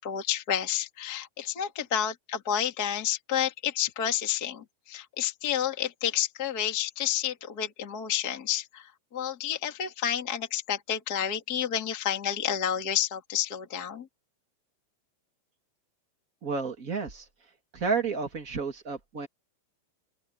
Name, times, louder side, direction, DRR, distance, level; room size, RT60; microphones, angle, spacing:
voice 1, 0.0-14.1, left 10 dB, 25° left, 2.2 m, -30 dB
voice 2, 16.4-17.2 17.7-19.3, right 5 dB, 35° right, 1.4 m, -31 dB
open air
omnidirectional pair, 5.5 m